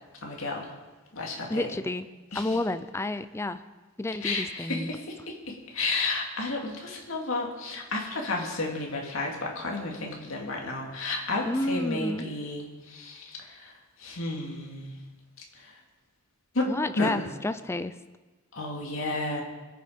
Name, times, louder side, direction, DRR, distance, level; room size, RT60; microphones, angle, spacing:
voice 1, 0.2-0.7 1.1-1.7 2.3-2.6 4.2-15.0 15.5-15.8 16.5-16.7 17.0-17.2 18.5-19.4, left 2 dB, 75° left, 0 dB, 2.4 m, -32 dB
voice 2, 1.5-2.1 2.3-3.6 4.0-4.9 11.5-12.2 16.7-17.9, left 2 dB, 10° left, 12 dB, 0.4 m, -30 dB
22.0 x 7.3 x 5.1 m, 1.2 s
head